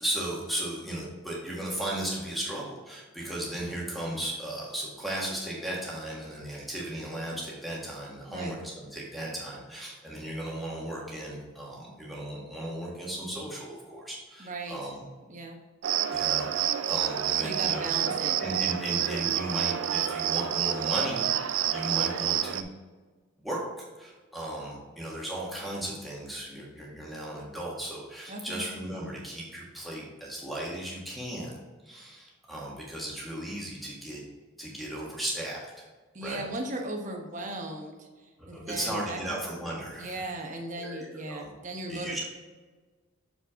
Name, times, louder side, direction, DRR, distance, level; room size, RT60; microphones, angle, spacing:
voice 1, 0.0-15.1 16.1-18.1 18.4-21.3 21.7-22.7 23.4-31.5 31.8-34.2 34.6-35.7 36.2-36.4 38.4-40.3 40.8-41.5 41.9-42.2, right 1 dB, ahead, -4 dB, 1.7 m, -36 dB
voice 2, 14.4-14.8 15.3-15.6 17.4-18.4 28.3-28.6 36.1-39.2 40.0-42.2, right 2 dB, 35° right, 2 dB, 1.1 m, -37 dB
Cricket, 15.8-22.6, right 10 dB, 75° right, 0.4 m, -28 dB
6.9 x 5.9 x 3.7 m, 1.4 s
head